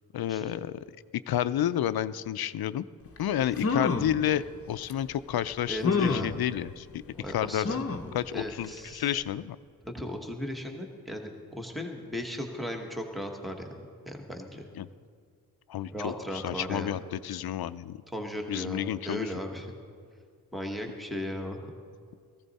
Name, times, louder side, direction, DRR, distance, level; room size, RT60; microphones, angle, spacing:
voice 1, 0.1-0.8 1.3-2.8 3.2-7.0 7.3-7.7 8.1-9.6 14.7-14.9 15.7-18.0 18.5-19.3, left 11 dB, 80° left, 14 dB, 0.5 m, -30 dB
sound 1, 3.2-3.3 3.6-4.2 4.9-5.0 5.8-6.4 7.6-8.1 8.6-8.7 9.0-9.1, left 4 dB, 40° left, 0.8 m, -28 dB
voice 2, 3.4-3.7 5.7-6.4 7.1-7.9 8.3-9.2 9.8-14.7 15.9-17.0 18.1-19.7 20.5-21.7, equal, ahead, 3 dB, 1.2 m, -37 dB
17.5 x 15.0 x 4.1 m, 2.2 s
wide cardioid pair, 155°, 37 cm